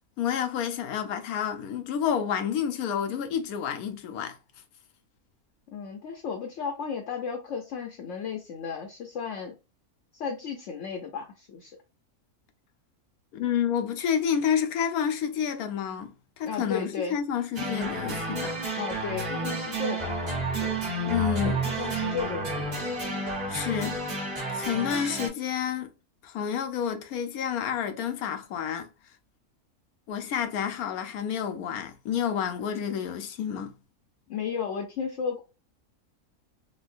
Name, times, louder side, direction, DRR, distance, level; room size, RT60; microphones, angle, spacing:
voice 1, 0.2-4.4 13.3-18.6 21.1-21.9 23.5-24.2 24.5-25.9 26.2-28.9 30.1-33.7, left 8 dB, 90° left, 1.1 m, -29 dB
voice 2, 5.7-9.6 10.1-11.8 16.4-17.2 18.8-20.7 21.4-22.8 34.3-35.4, left 6 dB, 65° left, 0.9 m, -34 dB
sound 1, 17.6-25.3, right 2 dB, 30° right, 1.2 m, -31 dB
4.1 x 2.3 x 2.5 m
omnidirectional pair, 1.5 m